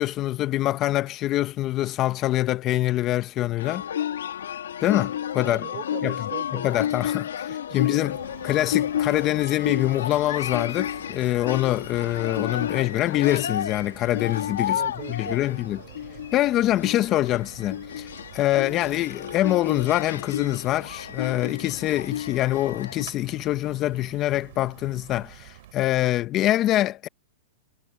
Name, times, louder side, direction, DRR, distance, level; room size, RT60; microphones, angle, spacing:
voice 1, 0.0-3.8 4.8-5.6 6.0-6.1 6.5-8.2 8.4-14.8 15.1-15.8 16.3-18.1 18.3-27.1, left 15 dB, 30° left, 1.0 m, -24 dB
sound 1, 3.6-23.0, left 10 dB, 85° left, 1.6 m, -31 dB
voice 2, 5.4-7.1 7.5-7.8 14.7-16.3, right 24 dB, 40° right, 3.8 m, -41 dB
sound 2, 8.1-25.7, right 16 dB, 60° right, 3.9 m, -48 dB
hypercardioid pair, 140°, 0 cm